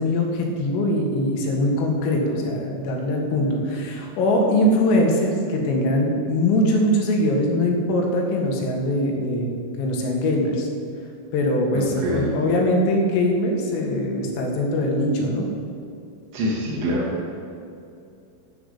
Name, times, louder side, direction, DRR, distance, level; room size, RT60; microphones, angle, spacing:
voice 1, 0.0-10.7 11.3-15.5, left 1 dB, 85° left, 1 dB, 4.4 m, -22 dB
voice 2, 11.7-12.3 16.3-17.3, equal, 60° right, -5 dB, 1.7 m, -25 dB
12.0 x 7.1 x 8.2 m, 2.6 s
omnidirectional pair, 5.8 m